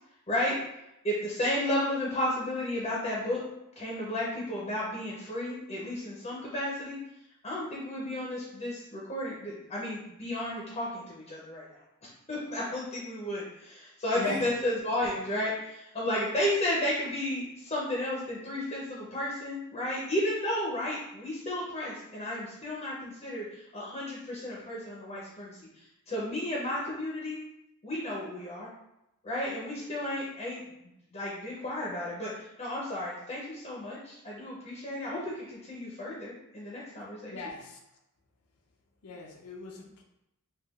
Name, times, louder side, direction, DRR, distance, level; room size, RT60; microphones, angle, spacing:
voice 1, 0.3-0.6 1.0-3.4 3.8-7.0 7.4-11.8 12.3-27.4 27.8-28.7 29.2-30.6 31.1-37.5, left 1 dB, 30° left, -5 dB, 0.6 m, -33 dB
voice 2, 14.1-14.5 37.3-37.8 39.0-40.0, left 3 dB, 75° left, 2 dB, 0.5 m, -38 dB
3.5 x 2.3 x 2.3 m, 0.86 s
head